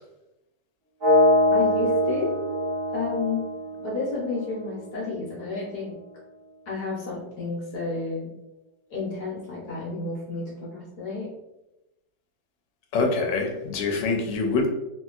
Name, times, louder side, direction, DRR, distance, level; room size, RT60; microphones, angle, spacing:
sound 1, 1.0-5.0, left 1 dB, 50° right, 0.6 m, -23 dB
voice 1, 1.5-2.3 2.9-3.4 3.8-6.0 6.7-8.3 8.9-11.3, left 3 dB, 65° left, -5 dB, 1.2 m, -31 dB
voice 2, 12.9-14.7, left 3 dB, 85° left, 2 dB, 1.3 m, -25 dB
2.9 x 2.7 x 2.3 m, 0.95 s
omnidirectional pair, 1.9 m